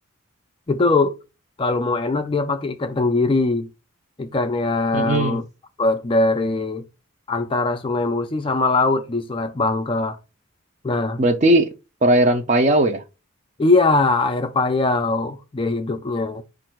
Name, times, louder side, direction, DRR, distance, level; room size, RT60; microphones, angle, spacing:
voice 1, 0.7-1.1 1.6-3.7 4.2-5.4 5.8-6.8 7.3-10.2 10.8-11.2 13.6-16.4, left 3 dB, 25° left, 0.4 m, -21 dB
voice 2, 4.9-5.4 11.2-11.7 12.0-13.0, right 1 dB, 35° right, 0.5 m, -17 dB
4.7 x 2.5 x 4.4 m
head